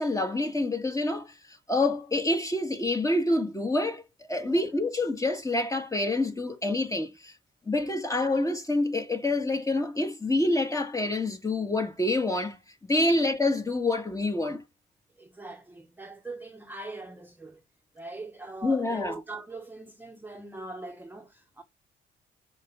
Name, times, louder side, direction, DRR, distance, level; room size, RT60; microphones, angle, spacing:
voice 1, 0.0-1.3 1.7-4.0 4.3-7.3 7.6-12.6 12.9-14.6 18.6-19.2, left 2 dB, 15° left, 1.8 m, -27 dB
voice 2, 15.2-17.6 17.9-21.6, right 2 dB, 10° right, 1.2 m, -42 dB
6.4 x 4.9 x 6.9 m
cardioid pair, 90°, 20 cm